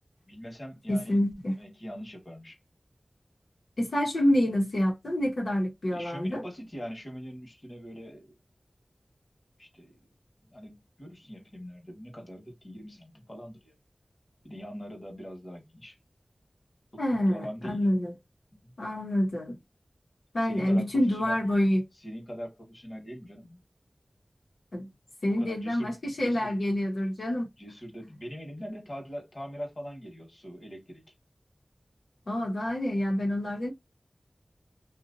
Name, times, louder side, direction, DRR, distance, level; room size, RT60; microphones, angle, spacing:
voice 1, 0.3-1.2 1.6-2.6 5.9-8.3 9.6-10.2 10.5-13.7 14.4-16.0 16.9-17.8 18.6-18.8 20.4-21.4 22.0-23.6 25.2-26.5 27.6-31.1, equal, 45° left, 1.4 m, -42 dB
voice 2, 0.9-1.6 3.8-6.4 17.0-18.1 18.8-19.6 20.3-21.8 24.7-24.9 25.2-27.5 32.3-33.7, left 1 dB, 85° left, 1.1 m, -27 dB
2.8 x 2.5 x 2.6 m
wide cardioid pair, 45°, 0 cm